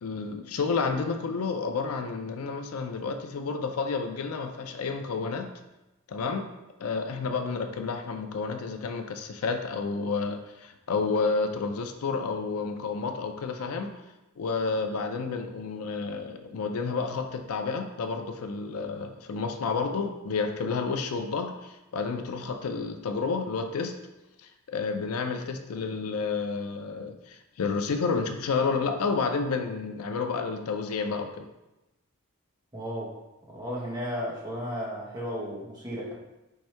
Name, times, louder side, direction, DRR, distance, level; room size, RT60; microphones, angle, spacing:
voice 1, 0.0-5.5 6.1-6.5 6.8-13.9 14.4-23.9 24.4-31.5, left 4 dB, 85° left, 7 dB, 0.4 m, -30 dB
voice 2, 32.7-33.2 33.5-36.1, equal, 20° right, -5 dB, 1.1 m, -34 dB
4.6 x 2.6 x 4.4 m, 0.99 s
head